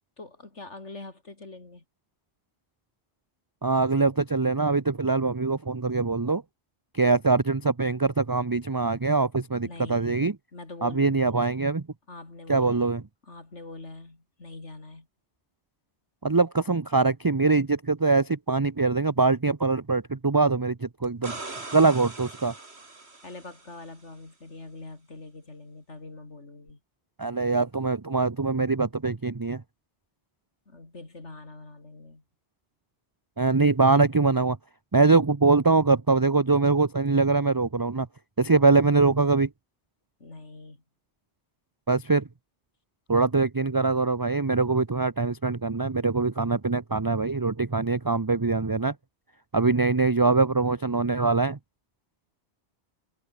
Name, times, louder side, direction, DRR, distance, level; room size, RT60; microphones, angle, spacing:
voice 1, 0.2-1.8 9.6-11.4 12.1-12.9 13.2-15.1 23.2-26.8 30.7-32.2 40.2-40.8, left 3 dB, 85° left, 4.0 m, -44 dB
voice 2, 3.6-6.4 6.9-10.3 10.8-11.8 12.5-13.0 16.2-21.3 21.7-22.5 27.2-29.6 33.4-34.6 34.9-38.1 38.4-39.5 41.9-42.3 43.1-48.9 49.5-51.6, right 3 dB, 20° right, 0.7 m, -23 dB
sound 1, 21.0-23.9 26.7-26.8, right 3 dB, 65° right, 3.5 m, -41 dB
omnidirectional pair, 1.2 m